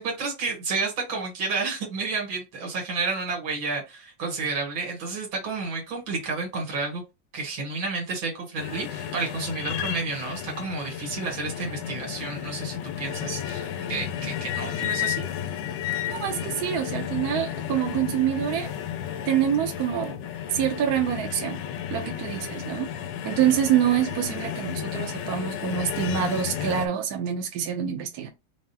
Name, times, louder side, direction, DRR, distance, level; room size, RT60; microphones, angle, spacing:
voice 1, 0.0-7.0 7.3-15.2, right 4 dB, 85° right, 2.1 m, -31 dB
sound 1, 8.6-26.9, left 10 dB, 75° left, 1.2 m, -33 dB
voice 2, 16.0-18.7 19.3-20.2 20.5-21.6 21.9-22.9 23.2-28.3, right 10 dB, 65° right, 1.0 m, -26 dB
4.7 x 2.0 x 4.0 m
omnidirectional pair, 2.1 m